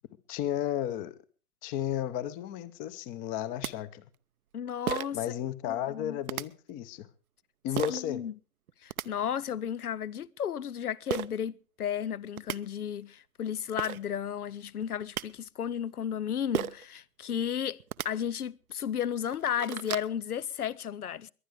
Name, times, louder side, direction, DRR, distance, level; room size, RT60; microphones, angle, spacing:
voice 1, 0.3-1.1 1.6-4.0 5.1-7.1 7.6-8.2, left 11 dB, 20° left, 0.7 m, -33 dB
sound 1, 3.3-3.4 3.6-3.7 4.9-5.2 6.3-6.4 7.8-8.0 8.7-9.1 11.1-11.3 12.1-12.2 12.4-12.6 13.5-13.6 13.8-14.0 14.8-15.2 16.5-16.9 17.8-18.1 18.7-18.8 19.2-20.1, right 10 dB, 75° right, 0.8 m, -33 dB
voice 2, 4.5-5.2 5.7-6.2 7.9-8.3 8.8-17.8 18.0-21.3, left 9 dB, 90° left, 0.7 m, -33 dB
22.5 x 9.4 x 5.0 m
hypercardioid pair, 130°, 43 cm